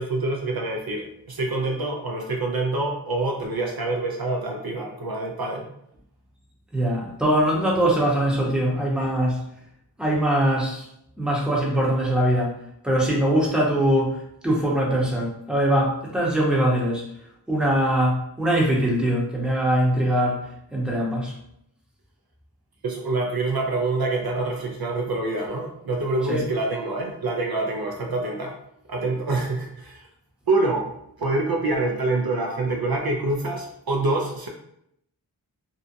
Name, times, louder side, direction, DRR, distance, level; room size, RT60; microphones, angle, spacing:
voice 1, 0.0-5.7 22.8-28.6 28.9-30.1 30.5-30.9 31.2-34.5, right 2 dB, 60° right, 1 dB, 0.5 m, -26 dB
voice 2, 6.7-9.5 10.0-10.9 11.2-17.1 17.5-21.3 26.3-26.4, right 1 dB, ahead, -3 dB, 0.8 m, -22 dB
2.6 x 2.2 x 2.5 m, 0.75 s
wide cardioid pair, 45°, 42 cm